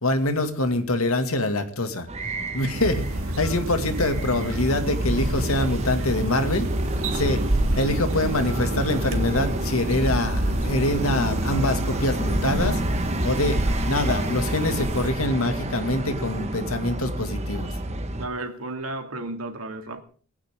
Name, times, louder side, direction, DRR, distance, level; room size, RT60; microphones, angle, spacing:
voice 1, 0.0-2.1 2.5-3.0 3.4-6.7 7.1-7.4 7.8-12.8 13.2-13.6 13.9-17.7, left 1 dB, 90° left, 2.3 m, -25 dB
sound 1, 2.1-18.3, right 1 dB, 30° right, 1.5 m, -31 dB
sound 2, 2.7-15.1, right 1 dB, 70° right, 2.0 m, -28 dB
voice 2, 18.2-20.0, right 2 dB, 90° right, 2.3 m, -33 dB
19.5 x 16.0 x 3.7 m
head